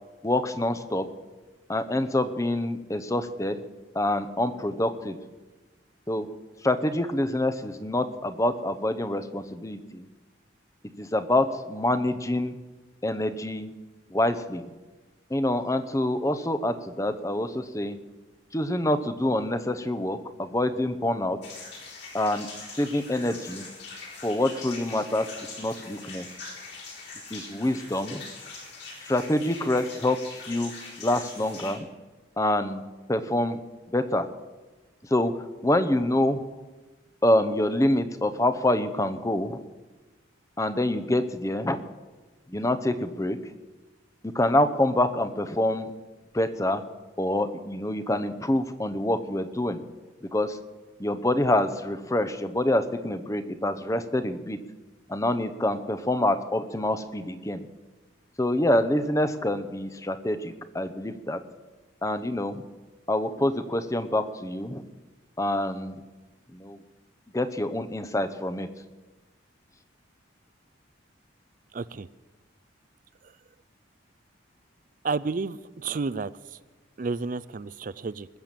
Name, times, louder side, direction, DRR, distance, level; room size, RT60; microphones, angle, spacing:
voice 1, 0.2-1.1 1.7-3.6 3.9-5.2 6.1-6.3 6.6-10.1 11.0-12.6 13.0-13.7 14.1-14.6 15.3-18.0 18.5-21.4 22.1-22.5 22.8-23.7 24.2-26.3 27.3-28.2 29.0-30.7 31.0-31.9 32.4-32.8 33.1-33.6 33.9-34.3 35.0-35.3 35.6-36.4 37.2-39.6 40.6-41.8 42.5-43.5 44.2-45.9 46.3-46.8 47.2-49.8 50.3-50.6 51.0-54.6 55.1-57.7 58.4-61.4 62.0-62.6 63.1-64.9 65.4-66.0 66.5-66.8 67.3-68.7, left 1 dB, 15° left, 11 dB, 0.7 m, -26 dB
sound 1, 21.4-31.7, left 4 dB, 60° left, 4.2 m, -42 dB
voice 2, 71.7-72.1 75.0-76.3 77.0-78.3, right 4 dB, 40° right, 18 dB, 0.4 m, -31 dB
20.5 x 6.9 x 7.5 m, 1.2 s
head